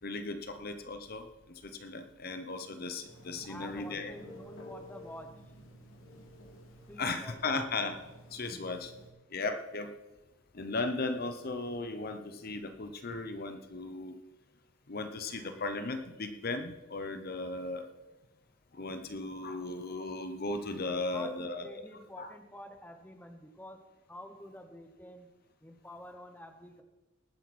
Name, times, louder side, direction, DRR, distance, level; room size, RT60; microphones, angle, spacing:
voice 1, 0.0-4.1 7.0-8.0 8.3-8.9 9.3-9.9 10.5-14.1 14.9-17.9 18.7-21.8 22.2-22.3, left 3 dB, 50° left, 8 dB, 0.8 m, -36 dB
Telephone, 3.0-9.1, left 1 dB, 75° left, 2.2 m, -52 dB
voice 2, 3.4-5.3 6.9-7.4 8.5-8.8 21.0-23.8 24.1-25.3 25.6-26.8, left 1 dB, 10° left, 6 dB, 0.9 m, -48 dB
19.0 x 8.9 x 4.2 m, 1.1 s
head